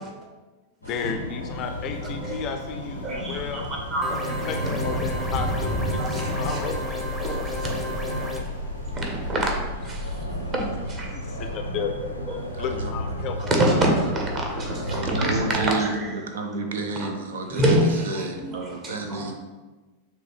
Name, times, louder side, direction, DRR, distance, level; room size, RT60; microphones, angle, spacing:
sound 1, 0.8-15.7, equal, 90° left, 0.5 m, -32 dB
voice 1, 0.8-3.7 4.5-7.5 11.1-11.9 12.6-13.8 14.3-14.5, left 6 dB, 35° left, 6 dB, 0.4 m, -33 dB
sound 2, 1.5-9.4, right 1 dB, 80° right, 1.2 m, -38 dB
voice 2, 3.0-4.3 6.0-6.6 7.2-8.0 8.9-9.5 9.8-10.2 10.5-11.2 12.4-12.5 13.5-16.1 17.0-17.1 17.5-19.3, right 1 dB, 30° right, 0 dB, 1.0 m, -26 dB
sound 3, 4.0-8.4, left 1 dB, 5° right, 0.7 m, -33 dB
voice 3, 12.5-12.9 14.9-17.8 18.0-19.3, right 3 dB, 65° right, 5 dB, 0.4 m, -31 dB
6.3 x 2.4 x 3.2 m, 1.2 s
figure-of-eight pair, 90°, 0 cm